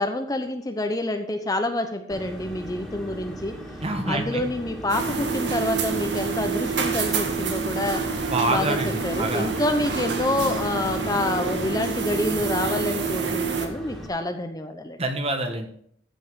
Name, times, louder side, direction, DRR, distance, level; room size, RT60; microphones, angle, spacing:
voice 1, 0.0-3.5 4.1-8.0 8.5-15.0, left 2 dB, 20° left, 6 dB, 0.8 m, -27 dB
sound 1, 2.1-14.1, equal, ahead, 2.3 m, -38 dB
voice 2, 3.8-4.4 8.3-9.5 15.0-15.7, right 2 dB, 30° right, 5 dB, 1.4 m, -26 dB
sound 2, 4.9-13.7, right 5 dB, 65° right, 1.6 m, -27 dB
14.5 x 5.5 x 6.3 m, 0.66 s
head